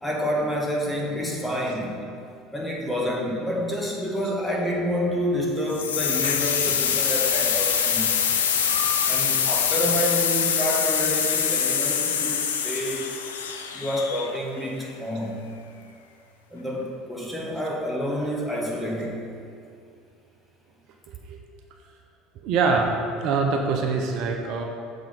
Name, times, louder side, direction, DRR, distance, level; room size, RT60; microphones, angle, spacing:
voice 1, 0.0-2.0 2.5-8.1 9.1-13.1 13.7-15.4 16.5-19.2, equal, 5° left, -3 dB, 1.6 m, -28 dB
sound 1, 5.7-14.6, left 7 dB, 85° left, 0.4 m, -24 dB
voice 2, 22.4-24.6, right 4 dB, 60° right, 3 dB, 0.6 m, -24 dB
7.1 x 3.8 x 5.1 m, 2.4 s
hypercardioid pair, 70°, 0 cm